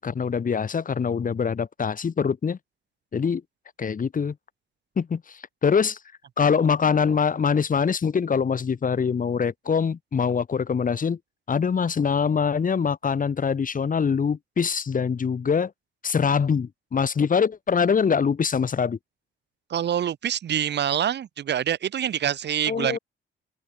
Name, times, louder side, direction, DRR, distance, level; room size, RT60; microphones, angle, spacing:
voice 1, 0.0-2.6 3.1-3.4 3.8-4.3 5.0-6.0 6.4-11.2 11.5-15.7 16.0-19.0 22.7-23.0, left 6 dB, 45° left, 6.8 m, -24 dB
voice 2, 19.7-23.0, right 10 dB, 60° right, 1.7 m, -26 dB
open air
cardioid pair, 90°, 20 cm